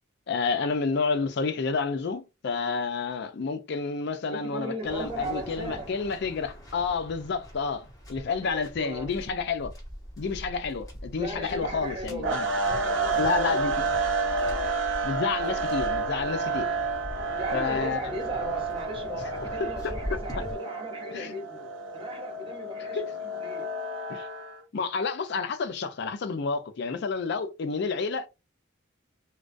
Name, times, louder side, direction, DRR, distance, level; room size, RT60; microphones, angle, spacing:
voice 1, 0.3-9.7 10.2-12.5 13.2-13.7 15.0-16.7 17.5-18.0 19.6-20.2 21.1-21.3 22.9-23.0 24.1-24.3 24.7-28.3, left 4 dB, 55° left, 0.4 m, -30 dB
voice 2, 4.3-6.0 8.4-9.2 11.2-13.8 14.4-14.7 15.4-15.6 17.4-23.0 23.4-23.7, right 1 dB, 25° right, 0.8 m, -37 dB
Waves surf, 4.8-20.6, equal, 15° left, 0.8 m, -42 dB
sound 1, 12.2-24.6, right 3 dB, 65° right, 0.6 m, -30 dB
2.2 x 2.2 x 2.5 m
head